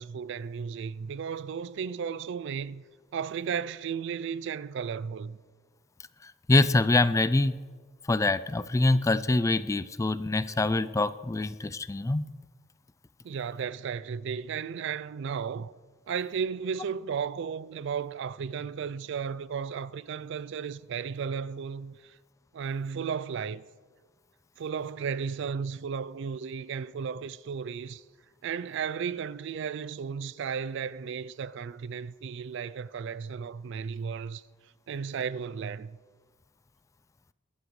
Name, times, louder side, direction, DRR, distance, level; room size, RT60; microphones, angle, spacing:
voice 1, 0.0-2.8 3.1-5.4 13.2-15.7 16.1-22.2 22.5-23.6 24.6-28.0 28.4-34.4 34.9-36.0, right 6 dB, 65° right, 0.4 m, -34 dB
voice 2, 6.2-7.6 8.1-12.2, left 2 dB, 15° left, 0.3 m, -25 dB
22.0 x 13.0 x 3.2 m
head